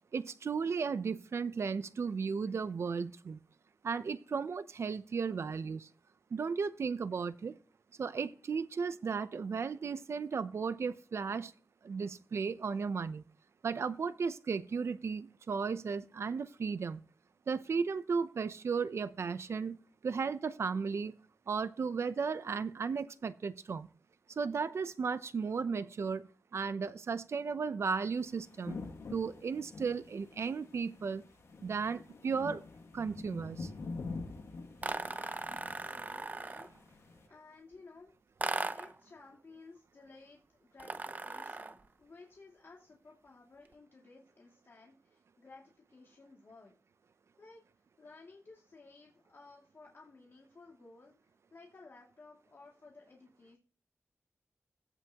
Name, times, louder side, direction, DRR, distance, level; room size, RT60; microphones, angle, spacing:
voice 1, 0.1-3.4 3.8-5.9 6.3-7.6 8.0-11.5 11.8-13.2 13.6-17.0 17.5-19.8 20.0-21.1 21.5-23.9 24.4-28.8 29.1-31.2 31.6-32.6 32.9-33.7, right 5 dB, 70° right, 0.6 m, -35 dB
sound 1, 28.2-37.3, left 3 dB, 85° left, 1.7 m, -46 dB
sound 2, 34.8-36.8 38.4-39.0 40.8-41.8, right 3 dB, 35° right, 0.7 m, -38 dB
voice 2, 35.0-38.1 38.7-46.7 47.4-47.6 48.0-53.6, left 3 dB, 55° left, 2.4 m, -56 dB
16.0 x 5.8 x 2.9 m
wide cardioid pair, 90°, 5 cm